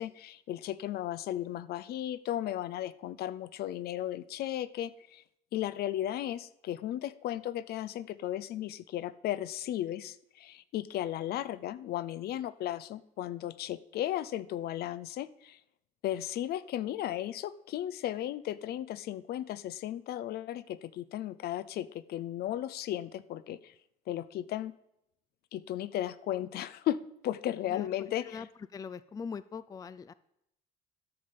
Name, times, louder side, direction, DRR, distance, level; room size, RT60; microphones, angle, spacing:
voice 1, 0.0-5.2 5.5-15.6 16.0-23.7 24.1-24.7 25.5-27.0 27.2-28.4, left 12 dB, 70° left, 16 dB, 0.6 m, -35 dB
voice 2, 27.6-30.1, left 6 dB, 20° left, 16 dB, 0.4 m, -42 dB
12.5 x 5.6 x 6.8 m, 0.79 s
cardioid pair, 110°, 17 cm